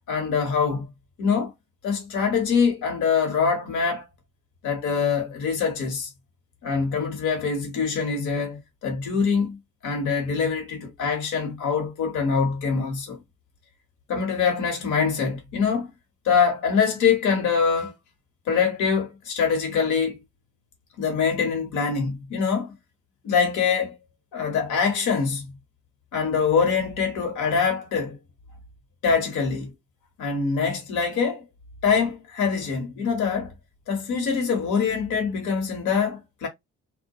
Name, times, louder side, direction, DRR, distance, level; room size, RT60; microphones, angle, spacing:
voice 1, 0.1-0.9 1.2-1.5 1.8-4.0 4.6-6.1 6.6-9.6 9.8-13.2 14.1-15.9 16.2-17.9 18.5-20.2 21.0-22.7 23.2-23.9 24.3-25.5 26.1-28.2 29.0-29.7 30.2-31.4 31.8-33.5 33.9-36.5, left 6 dB, 80° left, 1.0 m, -24 dB
2.2 x 2.2 x 2.6 m
cardioid pair, 90°, 30 cm